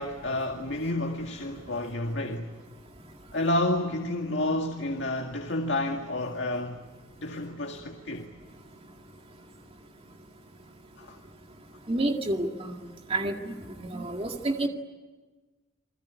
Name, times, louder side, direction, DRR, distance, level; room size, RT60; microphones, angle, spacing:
voice 1, 0.0-2.5 3.3-6.8 7.2-8.3 11.0-11.2, left 1 dB, 60° left, 2.1 m, -30 dB
voice 2, 11.9-12.7 13.1-13.5 13.9-14.7, right 2 dB, 30° right, 2.1 m, -29 dB
29.5 x 21.0 x 9.6 m
head